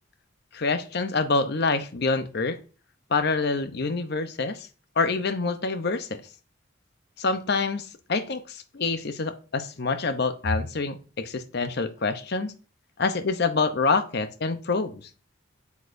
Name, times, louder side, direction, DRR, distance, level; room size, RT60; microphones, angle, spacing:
voice 1, 0.5-2.6 3.1-4.7 5.0-6.2 7.2-12.5 13.0-15.0, left 4 dB, 55° left, 9 dB, 0.7 m, -26 dB
8.0 x 7.2 x 2.6 m, 0.36 s
head